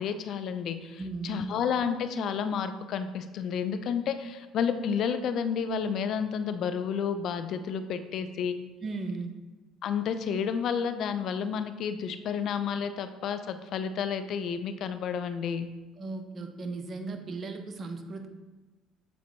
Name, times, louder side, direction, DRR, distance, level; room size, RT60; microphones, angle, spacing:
voice 1, 0.0-8.6 9.8-15.7, left 7 dB, 60° left, 10 dB, 0.5 m, -31 dB
voice 2, 1.0-1.5 8.8-9.3 16.0-18.3, right 3 dB, 40° right, 6 dB, 0.8 m, -36 dB
7.7 x 4.0 x 3.2 m, 1.2 s
supercardioid pair, 75°, 0 cm